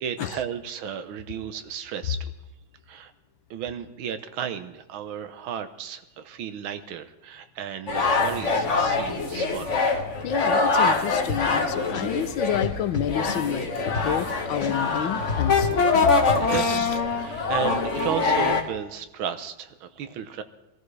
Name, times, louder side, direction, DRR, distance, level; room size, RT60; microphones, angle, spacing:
voice 1, 0.0-2.3 2.9-3.1 3.5-9.9 16.4-20.4, right 9 dB, 85° right, 10 dB, 1.7 m, -34 dB
sound 1, 7.9-18.6, left 4 dB, 40° left, 1.3 m, -24 dB
voice 2, 10.2-15.9 16.5-16.9, left 10 dB, 75° left, 12 dB, 1.5 m, -29 dB
sound 2, 11.3-11.6 11.9-14.3 14.6-16.4, left 3 dB, 60° left, 3.2 m, -30 dB
23.5 x 14.0 x 3.3 m, 0.97 s
omnidirectional pair, 2.2 m